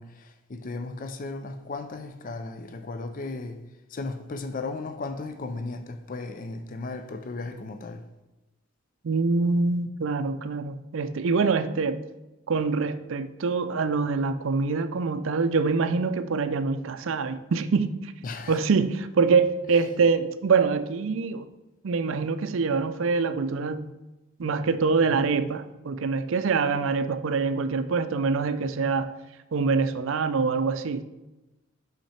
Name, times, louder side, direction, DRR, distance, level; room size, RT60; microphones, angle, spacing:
voice 1, 0.0-3.6 3.9-8.0 18.2-18.6, left 3 dB, 40° left, 0.5 m, -35 dB
voice 2, 9.0-12.0 12.5-18.1 18.5-21.5 21.8-23.9 24.4-29.1 29.5-31.0, right 4 dB, 65° right, 0.4 m, -25 dB
6.0 x 5.7 x 4.3 m
head